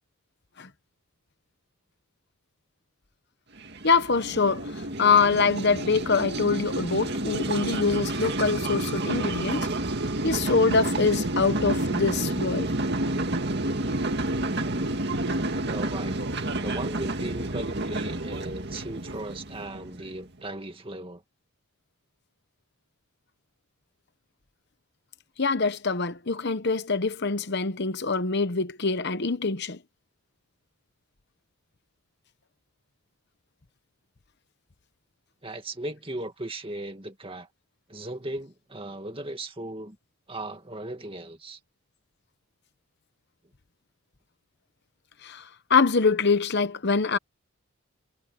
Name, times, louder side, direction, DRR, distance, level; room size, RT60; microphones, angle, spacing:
sound 1, 3.6-20.2, right 2 dB, 50° right, 2.2 m, -29 dB
voice 1, 3.8-9.7 10.2-12.7 25.4-29.8 45.2-47.2, left 4 dB, 50° left, 1.0 m, -24 dB
voice 2, 15.6-16.2 16.6-21.2 35.4-37.5 37.9-40.0 40.3-41.6, right 1 dB, 25° right, 2.1 m, -37 dB
head